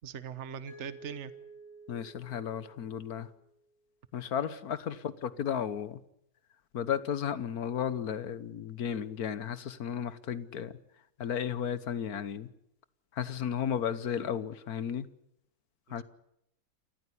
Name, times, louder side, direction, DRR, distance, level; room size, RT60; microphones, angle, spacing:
voice 1, 0.0-1.3 4.5-4.6 13.9-14.0 15.9-16.0, right 8 dB, 50° right, 13 dB, 1.3 m, -41 dB
Mallet percussion, 0.7-3.6, right 3 dB, 55° left, 5.3 m, -52 dB
voice 2, 1.9-3.3 4.1-6.0 6.7-10.8 11.2-12.5 13.1-15.1 15.9-16.0, left 8 dB, 75° left, 15 dB, 1.6 m, -34 dB
28.5 x 14.0 x 9.9 m, 0.79 s
omnidirectional pair, 1.6 m